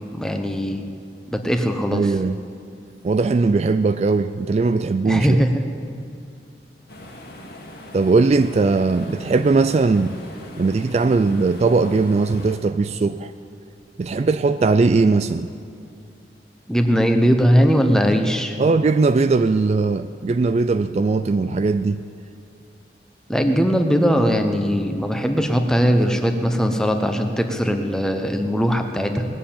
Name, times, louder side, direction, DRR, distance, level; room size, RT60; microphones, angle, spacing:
voice 1, 0.1-0.8 1.3-2.1 5.0-5.6 16.7-18.6 23.3-29.3, equal, 5° left, 5 dB, 0.9 m, -20 dB
voice 2, 1.9-2.4 3.0-5.4 7.9-10.2 10.6-13.3 14.0-15.5 18.6-22.0, right 3 dB, 40° right, 11 dB, 0.3 m, -19 dB
sound 1, 6.9-12.6, left 1 dB, 65° left, 2.0 m, -40 dB
19.5 x 7.5 x 8.7 m, 2.4 s
head